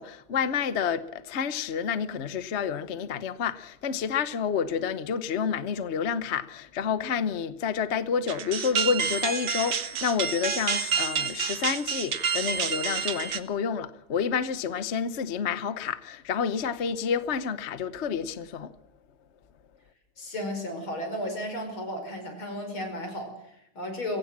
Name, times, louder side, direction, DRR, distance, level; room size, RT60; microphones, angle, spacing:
voice 1, 0.0-18.7, left 7 dB, 45° left, 0.9 m, -29 dB
sound 1, 8.3-13.4, right 7 dB, 60° right, 1.9 m, -29 dB
voice 2, 20.2-24.2, left 1 dB, 70° left, 5.8 m, -34 dB
23.5 x 16.5 x 7.4 m
omnidirectional pair, 2.3 m